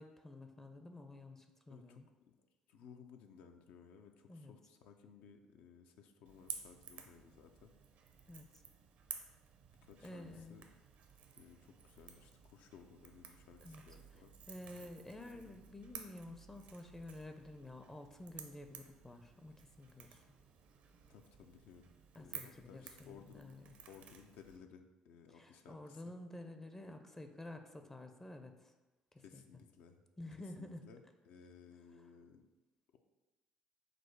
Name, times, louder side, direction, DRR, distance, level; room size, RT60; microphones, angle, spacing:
voice 1, 0.0-2.1 4.3-4.5 8.3-8.5 10.0-10.6 13.6-13.8 14.5-20.2 22.1-23.7 25.3-28.7 29.1-29.4 30.2-30.8, left 1 dB, 15° left, 6 dB, 0.5 m, -51 dB
voice 2, 1.7-2.0 2.3-7.7 9.8-10.6 11.4-14.3 14.8-14.9 15.2-15.6 21.1-21.9 22.2-23.5 23.9-26.1 29.2-30.0 30.6-32.5, left 6 dB, 70° left, 5 dB, 0.4 m, -59 dB
Crackle / Crack, 6.2-24.6, right 7 dB, 65° right, 0.5 m, -54 dB
4.9 x 2.0 x 4.5 m, 1.1 s
hypercardioid pair, 60°, 3 cm